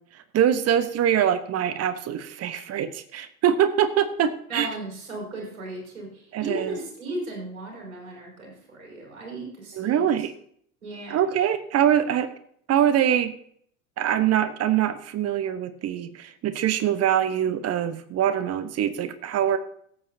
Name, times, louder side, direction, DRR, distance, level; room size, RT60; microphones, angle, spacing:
voice 1, 0.3-4.7 6.3-6.7 9.8-10.3 11.1-12.3 12.7-13.3 14.0-19.6, right 10 dB, 35° right, 12 dB, 1.0 m, -23 dB
voice 2, 4.5-10.2 10.8-11.2, right 2 dB, 75° right, -2 dB, 5.4 m, -36 dB
17.0 x 8.4 x 2.7 m, 0.64 s
hypercardioid pair, 80°, 41 cm